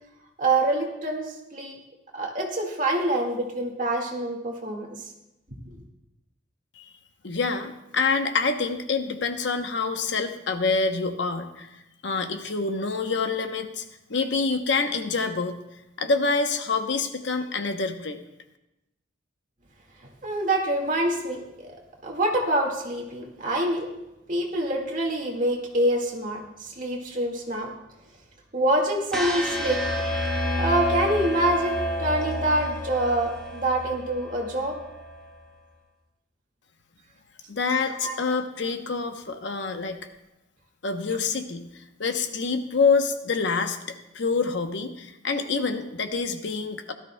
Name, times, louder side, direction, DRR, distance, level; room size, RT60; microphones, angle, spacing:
voice 1, 0.4-1.8 2.1-5.1 5.7-5.8 20.2-21.7 22.0-23.9 24.3-27.7 28.5-29.8 30.6-34.8 37.9-38.2, right 1 dB, 40° right, 1 dB, 1.8 m, -26 dB
voice 2, 7.2-13.8 14.1-15.5 16.0-18.2 37.5-40.0 40.8-43.8 44.1-46.9, left 4 dB, 65° left, 7 dB, 0.8 m, -26 dB
sound 1, 29.1-35.2, left 1 dB, 5° left, 1.6 m, -29 dB
17.0 x 12.5 x 2.2 m, 0.90 s
head